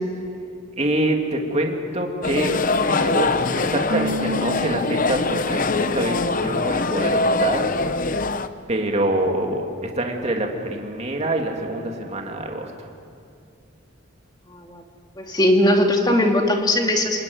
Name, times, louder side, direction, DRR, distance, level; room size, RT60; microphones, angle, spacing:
voice 1, 0.8-8.0 8.7-12.9, right 1 dB, 30° right, 2 dB, 2.7 m, -25 dB
sound 1, 2.2-8.5, left 3 dB, 40° left, 0.8 m, -23 dB
Keyboard (musical), 3.9-5.9, equal, 70° right, 2.5 m, -31 dB
voice 2, 14.5-14.8 15.2-17.2, left 1 dB, 20° left, 2 dB, 2.6 m, -19 dB
29.5 x 20.5 x 9.6 m, 2.4 s
head